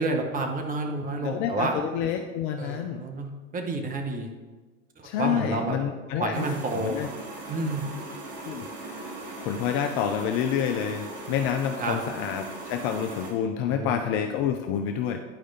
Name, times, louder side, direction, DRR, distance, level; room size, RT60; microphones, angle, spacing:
voice 1, 0.0-1.7 2.6-4.3 5.0-5.8 6.2-7.0 7.5-7.9 11.8-12.0 13.7-13.9, right 2 dB, 20° right, 3 dB, 1.1 m, -29 dB
voice 2, 1.2-3.0 5.0-6.5 6.8-7.1 8.4-9.1 9.4-15.2, left 8 dB, 35° left, 6 dB, 0.5 m, -28 dB
sound 1, 6.3-13.3, right 2 dB, 35° right, 1.8 m, -39 dB
10.5 x 4.8 x 4.0 m, 1.3 s
hypercardioid pair, 95°, 40 cm